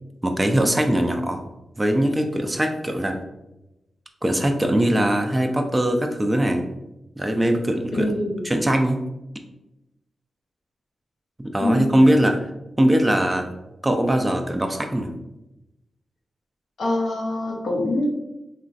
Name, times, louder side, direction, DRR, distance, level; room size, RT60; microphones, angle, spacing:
voice 1, 0.2-1.4 1.8-3.2 4.2-6.7 7.2-8.1 8.5-9.0 11.4-12.4 12.8-13.5 13.8-15.1, right 1 dB, 20° right, 5 dB, 0.4 m, -21 dB
voice 2, 8.0-8.5 11.6-11.9 16.8-18.3, left 1 dB, 75° left, -2 dB, 0.7 m, -24 dB
2.9 x 2.5 x 2.4 m, 0.94 s
supercardioid pair, 45°, 0 cm